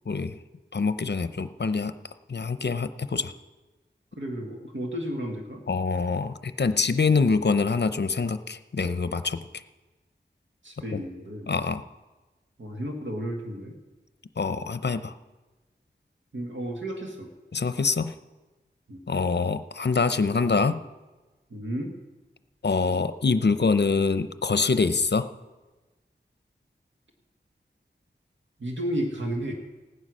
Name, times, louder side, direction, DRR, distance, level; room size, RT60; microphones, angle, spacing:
voice 1, 0.7-1.9 2.3-3.3 5.7-9.5 10.9-11.0 11.5-11.8 14.4-15.1 17.5-18.1 19.1-20.8 22.6-25.3, left 4 dB, 65° left, 11 dB, 0.7 m, -25 dB
voice 2, 4.1-5.6 10.6-11.5 12.6-13.8 16.3-17.3 18.9-19.0 21.5-21.9 28.6-29.5, equal, 85° right, 2 dB, 1.6 m, -32 dB
16.0 x 9.7 x 6.3 m, 1.2 s
wide cardioid pair, 40°, 19 cm